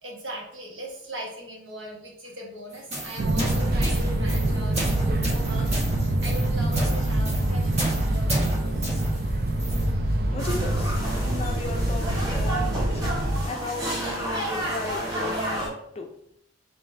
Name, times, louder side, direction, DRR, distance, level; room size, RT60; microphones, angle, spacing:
voice 1, 0.0-8.9, equal, 75° right, -2 dB, 1.2 m, -39 dB
sound 1, 2.7-9.9, right 1 dB, 35° right, 1.4 m, -32 dB
Fixed-wing aircraft airplane, 3.2-13.5, right 1 dB, 50° right, 0.4 m, -25 dB
voice 2, 10.3-10.9 11.2-13.0 13.5-16.1, left 2 dB, 30° left, 4 dB, 0.5 m, -35 dB
sound 2, 10.4-15.7, right 1 dB, 20° right, 1.1 m, -31 dB
3.8 x 3.4 x 2.6 m, 0.73 s
head